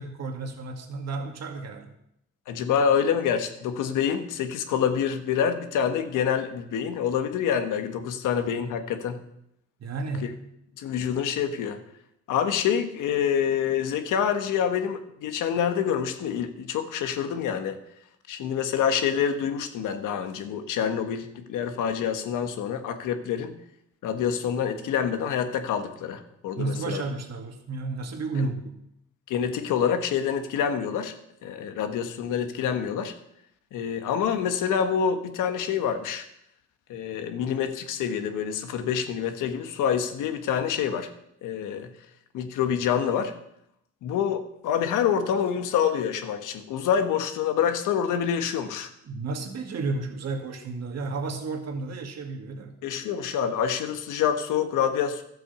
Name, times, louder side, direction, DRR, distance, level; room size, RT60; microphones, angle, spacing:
voice 1, 0.0-1.9 9.8-10.4 26.6-28.7 49.1-52.8, right 3 dB, 60° right, 4 dB, 2.2 m, -32 dB
voice 2, 2.5-9.2 10.2-10.3 10.8-11.8 12.3-17.8 18.3-23.6 24.0-27.0 28.3-28.5 29.3-31.1 31.4-33.1 33.7-36.2 36.9-41.1 41.4-41.9 42.3-43.3 44.0-48.9 52.8-55.2, left 8 dB, 90° left, 7 dB, 1.4 m, -27 dB
12.5 x 7.9 x 6.8 m, 0.77 s
cardioid pair, 90°, 30 cm